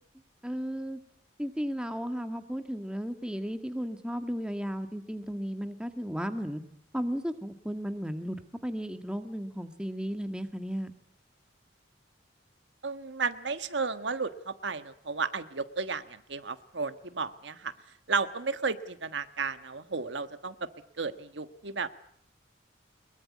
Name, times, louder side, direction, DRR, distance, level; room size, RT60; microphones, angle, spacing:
voice 1, 0.4-1.0 1.4-6.6 6.9-8.4 8.6-10.9, equal, 5° right, 7 dB, 1.7 m, -34 dB
voice 2, 12.8-17.7 18.1-20.5 21.0-21.9, right 4 dB, 70° right, 10 dB, 1.4 m, -33 dB
23.0 x 22.5 x 9.5 m, 0.66 s
head